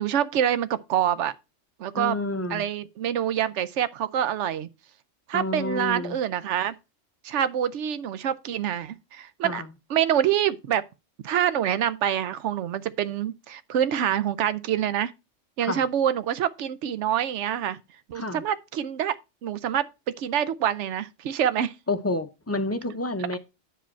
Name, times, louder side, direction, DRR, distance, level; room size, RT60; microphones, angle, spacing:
voice 1, 0.0-1.3 1.8-2.1 2.5-4.7 5.3-6.7 7.2-9.6 9.9-10.8 11.2-15.1 15.6-17.8 18.1-19.2 19.4-19.9 20.2-21.7, right 10 dB, 70° right, 0.9 m, -26 dB
voice 2, 1.9-2.7 5.3-6.2 9.4-9.7 15.6-15.8 18.1-18.4 21.9-23.4, left 2 dB, 15° left, 0.5 m, -29 dB
9.0 x 5.0 x 4.4 m
omnidirectional pair, 1.3 m